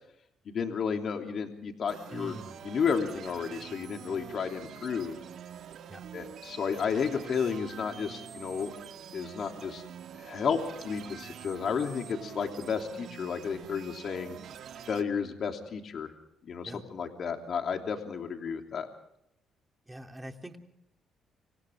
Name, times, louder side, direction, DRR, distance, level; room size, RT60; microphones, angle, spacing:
voice 1, 0.4-2.4 2.6-5.2 6.1-8.7 9.1-9.8 10.2-14.4 14.9-16.1 16.4-18.9, left 6 dB, 60° left, 4 dB, 3.1 m, -32 dB
sound 1, 1.9-15.0, right 9 dB, 70° right, 2.0 m, -45 dB
voice 2, 2.1-2.5 5.9-6.0 16.6-16.8 19.9-20.6, right 1 dB, 10° right, 4 dB, 3.2 m, -43 dB
29.5 x 26.0 x 3.7 m, 0.77 s
cardioid pair, 90°, 0 cm